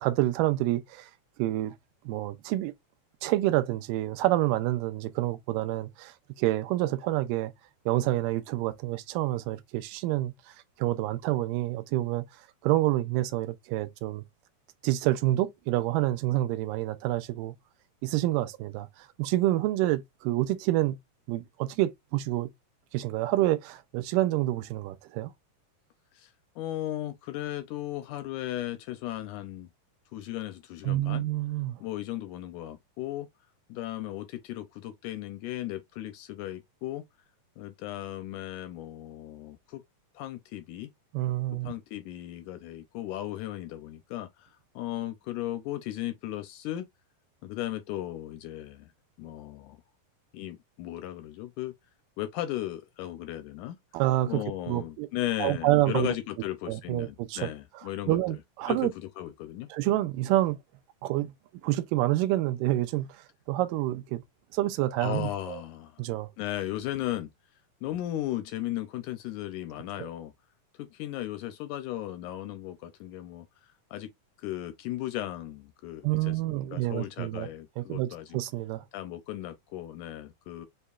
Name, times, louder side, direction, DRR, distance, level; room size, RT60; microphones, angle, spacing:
voice 1, 0.0-1.1 1.4-1.7 2.1-2.7 3.2-7.5 7.9-12.2 12.6-14.2 14.8-17.5 18.0-21.0 21.3-22.5 22.9-25.3 30.8-31.8 41.1-41.7 53.9-55.1 55.4-56.1 56.7-57.5 58.1-58.9 59.7-60.6 61.0-61.3 61.6-63.1 63.5-64.2 64.5-65.6 66.0-66.3 76.0-77.5 77.8-78.8, right 16 dB, 85° right, 2.2 m, -28 dB
voice 2, 26.1-29.7 30.1-31.2 31.8-33.3 33.7-37.0 37.6-39.8 40.2-40.9 41.6-46.9 47.4-48.9 49.2-49.8 50.3-51.7 52.2-53.8 54.3-58.4 58.7-59.7 65.0-66.0 66.4-67.3 67.8-70.3 70.8-74.1 74.4-78.4 78.9-80.7, left 14 dB, 80° left, 1.8 m, -36 dB
6.5 x 2.8 x 2.3 m
omnidirectional pair, 3.9 m